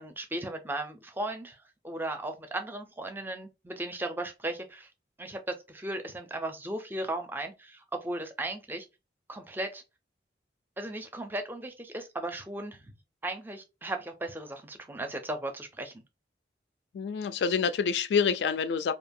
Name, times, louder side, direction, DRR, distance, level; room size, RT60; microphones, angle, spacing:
voice 1, 0.0-4.9 5.2-5.4 5.7-8.9 9.3-9.8 10.8-12.8 13.2-15.9, right 1 dB, 10° right, 0.4 m, -36 dB
voice 2, 16.9-18.9, left 6 dB, 75° left, 0.3 m, -27 dB
2.7 x 2.2 x 2.6 m
head